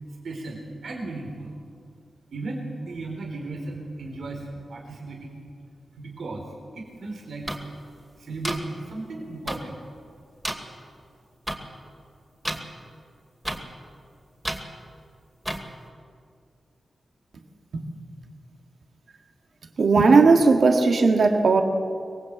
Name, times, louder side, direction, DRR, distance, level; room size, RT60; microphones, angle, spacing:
voice 1, 0.2-1.5 2.3-5.4 6.0-6.5 6.7-7.5 8.2-9.8, right 2 dB, 80° right, 1 dB, 3.7 m, -35 dB
sound 1, 7.5-7.6 8.4-8.6 9.5-9.6 10.4-10.5 11.5-11.6 12.4-12.6 13.4-13.6 14.4-14.6 15.4-15.6, right 1 dB, 10° right, 2.4 m, -29 dB
voice 2, 19.8-21.6, right 4 dB, 65° right, 4 dB, 1.9 m, -17 dB
24.0 x 21.0 x 8.1 m, 2.3 s
wide cardioid pair, 110°, 0 cm